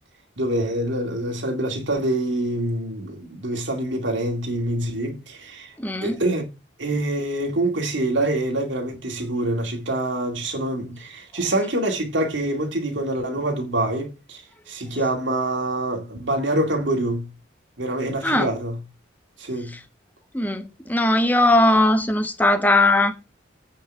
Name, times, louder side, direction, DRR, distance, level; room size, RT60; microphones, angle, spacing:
voice 1, 0.4-5.8 6.0-6.4 6.8-17.3 17.8-18.8 19.4-19.7, right 1 dB, 75° right, 2.3 m, -25 dB
voice 2, 5.8-6.2 18.2-18.5 20.3-23.1, left 2 dB, 10° left, 1.1 m, -19 dB
8.8 x 5.4 x 7.0 m
head